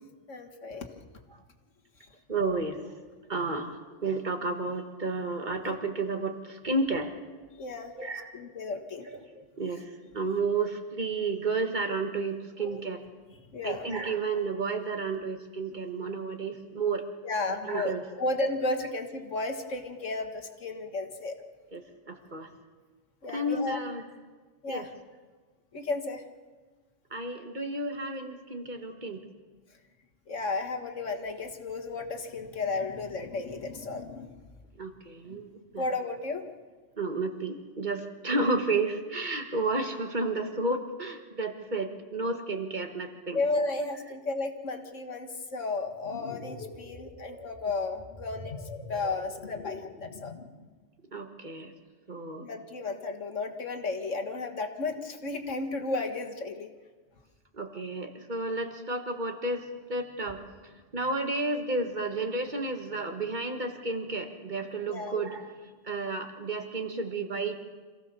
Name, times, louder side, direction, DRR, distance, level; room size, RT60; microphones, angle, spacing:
voice 1, 0.3-0.9 7.6-7.9 8.3-9.1 13.3-13.9 17.2-21.3 23.2-23.8 24.6-24.9 25.7-26.2 30.3-34.3 35.3-35.4 35.8-36.4 43.3-48.5 48.9-50.3 52.4-56.7 64.9-65.2, left 3 dB, 75° left, 5 dB, 2.0 m, -33 dB
voice 2, 2.3-2.8 3.3-3.8 4.0-7.1 8.0-8.3 9.3-13.0 13.6-17.1 17.6-18.0 21.7-22.5 23.3-24.0 24.7-24.9 27.1-29.2 34.8-35.8 37.0-43.4 51.1-51.7 52.1-52.5 57.5-60.4 60.9-65.5 65.8-67.6, right 3 dB, 35° right, 5 dB, 1.8 m, -32 dB
sound 1, 45.8-50.6, left 3 dB, 55° left, 2.0 m, -43 dB
26.0 x 15.5 x 6.9 m, 1.4 s
omnidirectional pair, 1.3 m